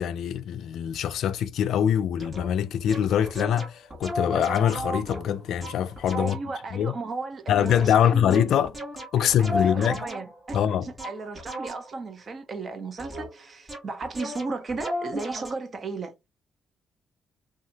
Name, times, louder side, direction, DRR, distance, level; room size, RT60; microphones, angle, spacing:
voice 1, 0.0-6.4 6.7-6.9 7.5-8.7 9.1-10.0 10.5-10.9, left 9 dB, 75° left, 0.4 m, -24 dB
sound 1, 2.2-2.5 2.9-6.6 7.7-12.1 13.0-13.4 13.7-15.5, equal, 25° right, 1.3 m, -35 dB
voice 2, 6.2-8.5 9.2-16.3, right 3 dB, 45° right, 0.8 m, -35 dB
2.7 x 2.4 x 2.8 m
cardioid pair, 90°, 0 cm